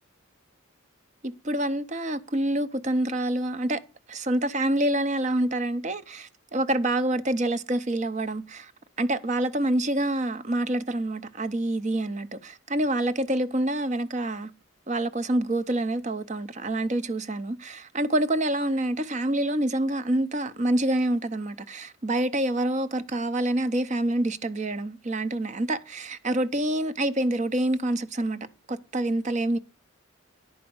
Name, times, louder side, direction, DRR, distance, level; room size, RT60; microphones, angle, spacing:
voice 1, 1.2-3.8 4.1-8.7 9.0-14.5 14.9-28.4 28.7-29.6, right 1 dB, 35° right, 0.7 m, -27 dB
10.5 x 4.9 x 7.0 m
head